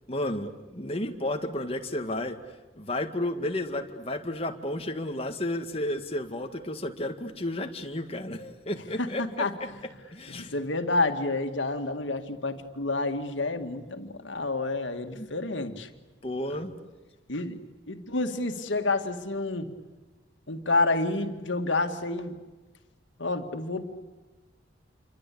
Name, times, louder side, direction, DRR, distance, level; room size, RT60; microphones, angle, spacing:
voice 1, 0.1-2.4 2.7-9.5 10.1-10.5 15.1-15.3 16.2-16.7, left 1 dB, 30° left, 6 dB, 1.9 m, -32 dB
voice 2, 9.0-9.5 10.3-15.9 17.3-17.6 17.9-19.7 20.5-22.3 23.2-23.8, left 2 dB, 80° left, 6 dB, 2.2 m, -29 dB
28.5 x 24.5 x 8.6 m, 1.2 s
head